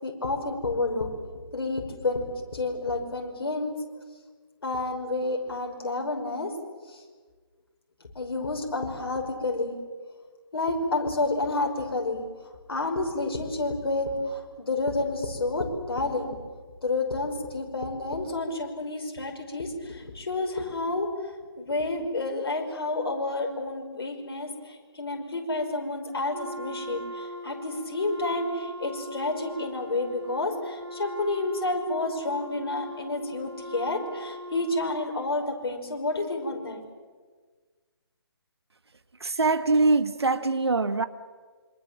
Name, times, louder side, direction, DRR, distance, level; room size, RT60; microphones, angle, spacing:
voice 1, 0.0-1.1 1.5-2.3 2.5-3.7 4.6-6.5 6.9-7.0 8.2-9.8 10.5-12.2 12.7-16.4 16.8-21.1 21.6-36.8, left 2 dB, 60° left, 5.6 m, -30 dB
Wind instrument woodwind instrument, 26.3-35.1, right 1 dB, 90° right, 1.8 m, -40 dB
voice 2, 39.2-41.0, right 3 dB, 70° right, 1.7 m, -23 dB
26.5 x 25.0 x 7.6 m
figure-of-eight pair, 145°, 14 cm